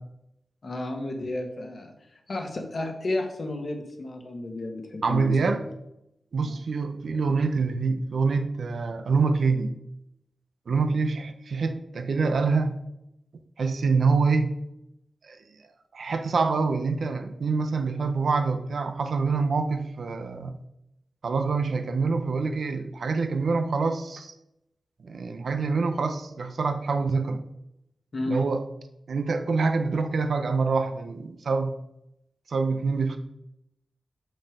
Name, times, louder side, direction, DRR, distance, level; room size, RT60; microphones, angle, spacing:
voice 1, 0.6-1.9 2.3-5.7 6.4-6.6 28.1-28.4, left 2 dB, 45° left, 5 dB, 1.3 m, -32 dB
voice 2, 5.0-5.6 6.3-9.7 10.7-12.7 13.6-14.5 15.2-15.4 15.9-20.5 21.2-24.3 25.0-27.4 28.3-28.6 29.1-31.7 32.5-33.2, right 4 dB, 65° right, 8 dB, 0.8 m, -25 dB
6.4 x 6.4 x 5.1 m, 0.83 s
wide cardioid pair, 130°, 0 cm